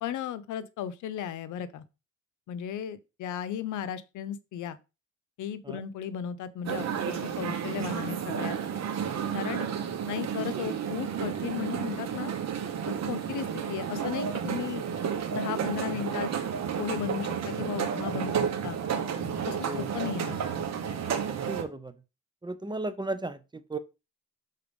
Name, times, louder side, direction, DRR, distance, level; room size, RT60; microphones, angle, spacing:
voice 1, 0.0-1.8 2.5-4.8 5.4-8.6 9.3-9.7 10.1-12.3 12.9-14.8 15.3-16.3 16.8-18.8 19.5-20.4, left 9 dB, 80° left, 0.8 m, -35 dB
sound 1, 6.6-21.6, right 7 dB, 60° right, 1.3 m, -31 dB
voice 2, 21.3-21.9 22.4-23.8, right 2 dB, 15° right, 0.7 m, -35 dB
6.7 x 4.0 x 5.2 m
cardioid pair, 90°, 30 cm